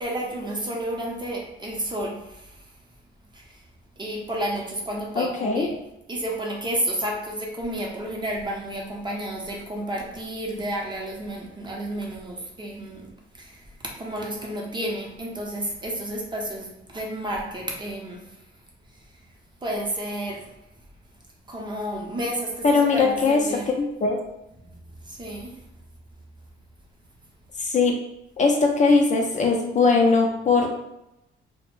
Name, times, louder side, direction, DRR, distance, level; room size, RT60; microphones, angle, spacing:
voice 1, 0.0-2.6 3.3-3.6 4.0-5.7 6.1-13.1 13.4-13.7 14.0-18.2 19.6-20.5 21.5-23.7 25.0-25.5, right 1 dB, 25° right, -1 dB, 0.6 m, -31 dB
voice 2, 5.2-5.7 22.6-23.4 23.8-24.2 27.6-27.9 28.4-30.7, left 4 dB, 40° left, 1 dB, 0.4 m, -20 dB
2.1 x 2.1 x 3.0 m, 0.88 s
cardioid pair, 90°, 20 cm